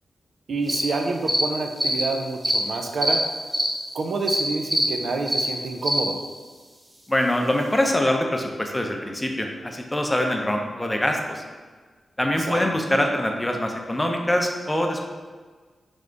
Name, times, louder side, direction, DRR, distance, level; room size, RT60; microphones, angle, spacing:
voice 1, 0.5-3.2 3.9-6.2 12.4-12.6, right 3 dB, 75° right, 3 dB, 0.5 m, -28 dB
sound 1, 0.7-0.8 1.3-1.4 1.8-2.0 2.4-2.6 3.0-3.2 3.5-3.7 4.3-4.4 4.7-4.8 5.3-5.5 5.8-6.0, equal, 30° right, 1.3 m, -22 dB
voice 2, 7.1-11.4 12.2-15.0, left 1 dB, 15° left, 2 dB, 0.6 m, -24 dB
3.6 x 3.4 x 3.8 m, 1.4 s
cardioid pair, 60°, 0 cm